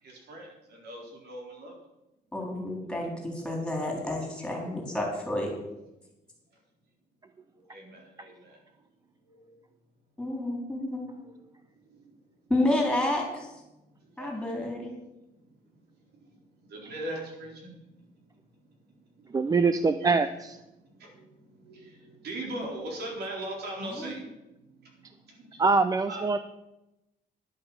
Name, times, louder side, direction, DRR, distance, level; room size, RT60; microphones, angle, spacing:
voice 1, 0.0-1.7 7.6-8.6 9.3-9.6 11.2-11.3 11.9-12.1 14.1-14.3 16.6-17.7 19.2-19.3 20.0-20.1 21.0-24.2 24.8-24.9 25.2-25.6 26.1-26.2, right 1 dB, 75° right, 0 dB, 4.1 m, -40 dB
voice 2, 2.3-5.5 10.2-11.0 12.5-13.5 14.2-14.9 23.9-24.1, left 1 dB, 5° left, -1 dB, 3.6 m, -30 dB
voice 3, 19.3-20.6 25.6-26.4, right 4 dB, 20° right, 10 dB, 0.5 m, -24 dB
11.0 x 8.7 x 7.2 m, 0.95 s
cardioid pair, 150°, 17 cm